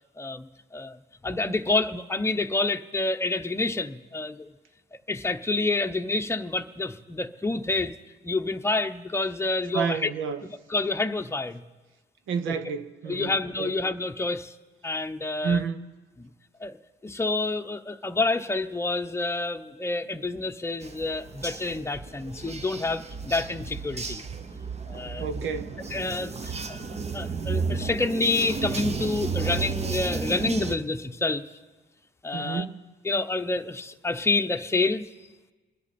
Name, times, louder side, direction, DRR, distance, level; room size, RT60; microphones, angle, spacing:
voice 1, 0.2-4.5 5.1-8.0 8.2-10.1 10.7-11.6 13.1-14.5 14.8-15.6 16.2-16.3 16.6-16.8 17.0-24.2 24.9-25.5 25.9-26.8 27.1-31.5 32.2-32.6 33.0-35.0, left 3 dB, 15° left, 7 dB, 0.8 m, -28 dB
voice 2, 9.7-10.5 12.3-13.7 15.4-15.9 25.2-25.8 32.3-32.8, right 6 dB, 85° right, 10 dB, 1.0 m, -30 dB
sound 1, 20.8-30.8, right 4 dB, 35° right, 0.9 m, -33 dB
29.5 x 10.5 x 4.3 m, 1.3 s
cardioid pair, 90°, 20 cm